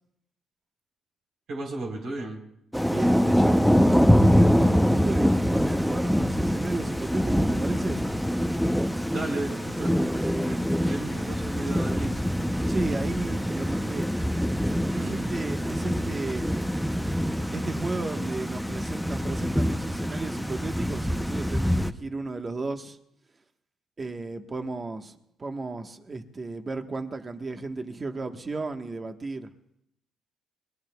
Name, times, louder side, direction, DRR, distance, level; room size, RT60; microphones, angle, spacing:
voice 1, 1.5-2.4 9.1-12.2 14.9-15.3, right 2 dB, 70° right, 3.8 m, -34 dB
Thunder / Rain, 2.7-21.9, equal, ahead, 0.7 m, -24 dB
voice 2, 2.8-8.0 12.7-14.1 14.7-15.0 15.3-16.6 17.5-23.0 24.0-29.5, right 3 dB, 30° right, 1.3 m, -34 dB
29.0 x 21.0 x 2.3 m
cardioid pair, 90°, 0 cm